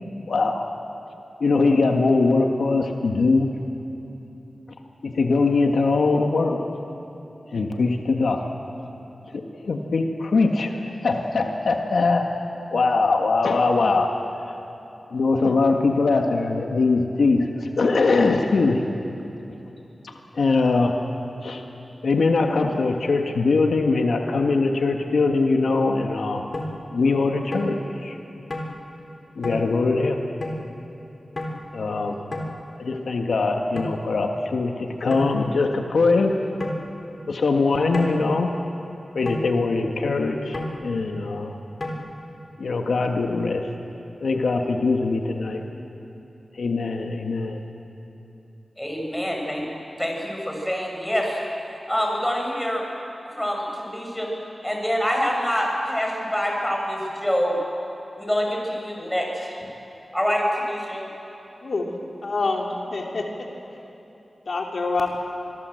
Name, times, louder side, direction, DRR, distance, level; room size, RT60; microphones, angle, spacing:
voice 1, 0.3-0.7 1.4-3.5 5.0-6.6 7.5-8.4 9.3-12.3 12.7-14.1 14.4-14.5 15.1-18.8 20.0-20.9 21.4-21.6 22.0-26.4 26.9-28.2 29.4-30.2 31.7-32.2 32.8-36.4 37.3-38.5 39.1-41.5 42.6-43.7 44.2-45.6 46.5-47.6, left 3 dB, 90° left, 3 dB, 1.6 m, -22 dB
sound 1, 26.5-26.7 27.5-27.7 28.5-28.7 29.4-29.6 30.4-30.6 31.4-31.5 32.3-32.5 33.8-34.0 35.1-35.3 36.6-36.8 37.9-38.2 39.3-39.5 40.5-40.8 41.8-41.9, left 2 dB, 50° left, 3.6 m, -30 dB
voice 2, 48.8-49.6 50.0-51.4 51.9-52.8 53.3-54.3 54.6-57.6 58.2-59.6 60.1-61.0, equal, 10° left, 0 dB, 6.6 m, -26 dB
voice 3, 61.6-62.0 62.2-63.2 64.5-65.1, left 3 dB, 70° left, 1 dB, 2.8 m, -26 dB
25.5 x 22.0 x 7.9 m, 2.9 s
wide cardioid pair, 65°, 0 cm